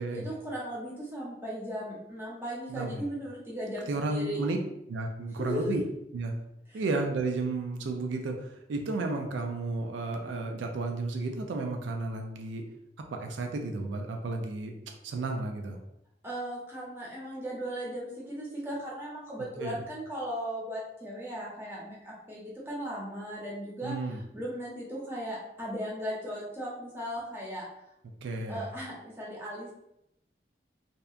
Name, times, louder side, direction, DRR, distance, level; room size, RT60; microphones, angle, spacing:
voice 1, 0.0-4.4 5.4-5.7 6.7-6.8 16.2-23.9 24.3-27.6 28.5-29.7, equal, 10° right, -6 dB, 0.6 m, -37 dB
voice 2, 2.7-3.1 3.9-4.6 4.9-5.8 6.1-6.4 6.7-12.6 13.1-14.7 15.0-15.8 19.6-19.8 23.8-24.2 28.2-28.7, right 3 dB, 85° right, 3 dB, 0.3 m, -32 dB
2.7 x 2.2 x 2.4 m, 0.82 s
head